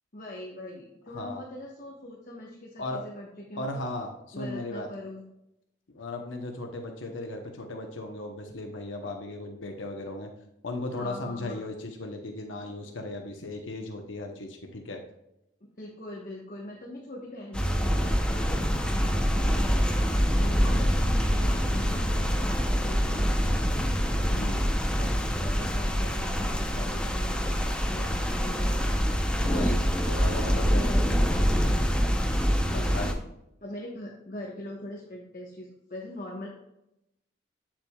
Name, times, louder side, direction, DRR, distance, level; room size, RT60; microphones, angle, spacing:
voice 1, 0.1-3.8 4.3-5.3 10.9-11.7 15.8-20.1 20.5-23.5 24.3-24.6 25.0-28.9 30.6-32.1 32.7-33.2 33.6-36.5, left 1 dB, 45° left, -2 dB, 1.2 m, -42 dB
voice 2, 3.6-4.9 5.9-10.3 10.6-15.0 20.4-20.5 24.3-24.6 29.4-29.8 30.1-30.9 32.7-33.2, left 2 dB, 85° left, 3 dB, 1.0 m, -36 dB
sound 1, 17.5-33.1, equal, 5° left, 0.7 m, -25 dB
8.6 x 7.5 x 2.3 m, 0.85 s
head